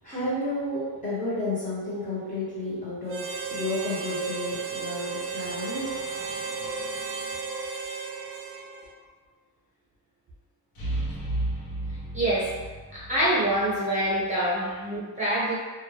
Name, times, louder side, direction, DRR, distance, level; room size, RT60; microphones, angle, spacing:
voice 1, 0.0-7.4, left 1 dB, 20° left, -9 dB, 0.9 m, -32 dB
Harmonica, 3.1-9.0, right 5 dB, 35° right, 0.4 m, -34 dB
sound 1, 5.4-6.3 10.8-13.8 14.0-14.1, right 1 dB, 70° left, 0.9 m, -34 dB
voice 2, 12.1-12.5 12.9-15.5, right 1 dB, 20° right, -9 dB, 0.9 m, -25 dB
2.3 x 2.1 x 3.2 m, 1.4 s
cardioid pair, 115°, 39 cm